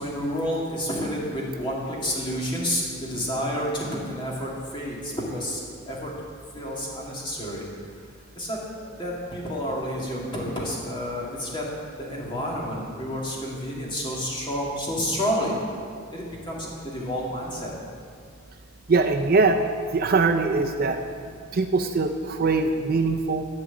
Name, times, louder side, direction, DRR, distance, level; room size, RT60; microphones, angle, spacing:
voice 1, 0.0-5.6 5.9-6.1 6.5-7.7 8.4-11.6 12.0-15.5 16.1-17.7, equal, 20° left, -4 dB, 2.0 m, -30 dB
voice 2, 18.9-19.6 19.9-21.0 21.5-23.5, right 3 dB, 45° right, 5 dB, 0.5 m, -22 dB
12.0 x 4.9 x 8.3 m, 2.2 s
head